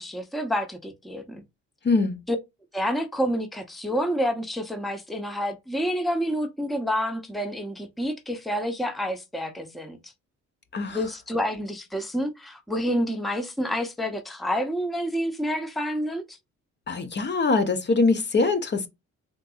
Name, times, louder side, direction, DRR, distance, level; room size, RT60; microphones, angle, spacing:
voice 1, 0.0-1.4 2.3-2.4 2.7-10.1 10.9-16.4, equal, ahead, 0.7 m, -28 dB
voice 2, 1.8-2.2 10.7-11.1 16.9-18.9, left 3 dB, 35° left, 0.8 m, -23 dB
3.8 x 2.5 x 2.3 m
cardioid pair, 90°, 30 cm